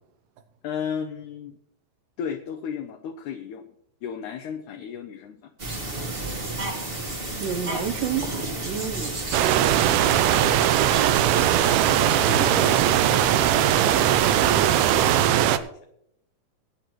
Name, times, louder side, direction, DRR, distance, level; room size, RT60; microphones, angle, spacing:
voice 1, 0.6-1.6 2.2-3.7 4.0-5.5 10.3-10.8 12.0-12.7 13.1-15.7, left 7 dB, 80° left, 7 dB, 1.8 m, -36 dB
sound 1, 5.6-15.2, right 2 dB, 45° right, 0.7 m, -32 dB
voice 2, 7.4-10.1 12.5-12.7, right 8 dB, 75° right, 8 dB, 2.3 m, -31 dB
sound 2, 9.3-15.6, right 12 dB, 90° right, 2.5 m, -20 dB
19.0 x 9.4 x 3.1 m, 0.75 s
omnidirectional pair, 4.1 m